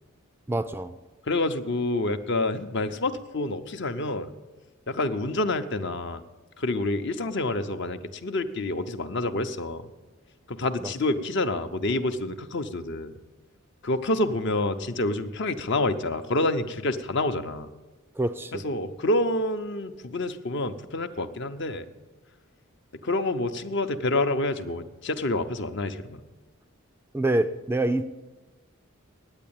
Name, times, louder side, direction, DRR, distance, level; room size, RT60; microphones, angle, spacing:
voice 1, 0.5-0.9 10.8-10.9 18.2-18.6 27.1-28.0, right 1 dB, 10° right, 11 dB, 0.3 m, -26 dB
voice 2, 1.3-4.3 4.9-6.2 6.6-9.8 10.5-13.2 13.8-17.7 18.5-21.9 23.0-26.2, left 2 dB, 55° left, 9 dB, 0.7 m, -28 dB
9.8 x 8.5 x 8.8 m, 1.2 s
head